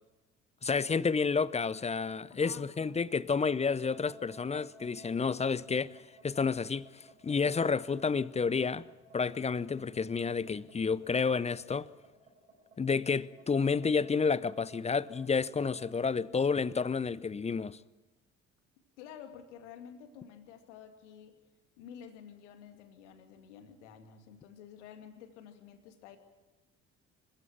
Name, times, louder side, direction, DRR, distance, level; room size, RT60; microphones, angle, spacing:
voice 1, 0.6-6.0 6.2-6.9 7.2-8.9 9.1-11.9 12.8-17.8, left 5 dB, 20° left, 0.7 m, -30 dB
voice 2, 2.3-3.1 19.0-21.4 21.8-26.2, left 8 dB, 70° left, 2.3 m, -51 dB
sound 1, 3.4-15.9, right 2 dB, 85° right, 5.2 m, -56 dB
26.0 x 15.5 x 9.1 m
figure-of-eight pair, 50°, 36 cm